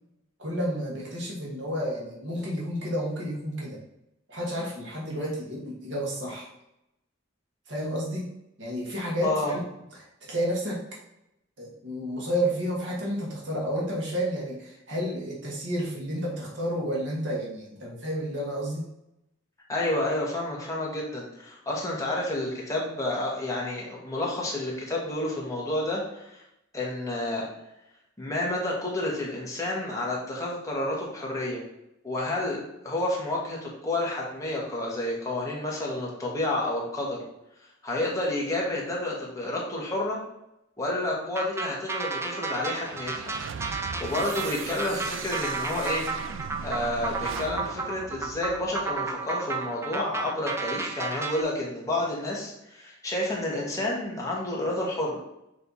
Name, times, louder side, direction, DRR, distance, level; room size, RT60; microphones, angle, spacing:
voice 1, 0.4-3.8 4.3-6.5 7.7-8.3 8.6-9.6 10.0-10.8 11.6-18.9, equal, 65° right, -3 dB, 1.9 m, -31 dB
voice 2, 9.2-9.5 19.7-26.4 26.7-27.5 28.2-31.6 32.0-37.2 37.8-40.2 40.8-43.3 44.0-46.0 46.6-55.2, left 1 dB, 15° left, -4 dB, 1.6 m, -30 dB
sound 1, 41.3-51.4, right 4 dB, 15° right, 0.4 m, -33 dB
sound 2, 42.8-49.0, right 6 dB, 80° right, 0.4 m, -39 dB
6.6 x 3.4 x 4.2 m, 0.86 s
head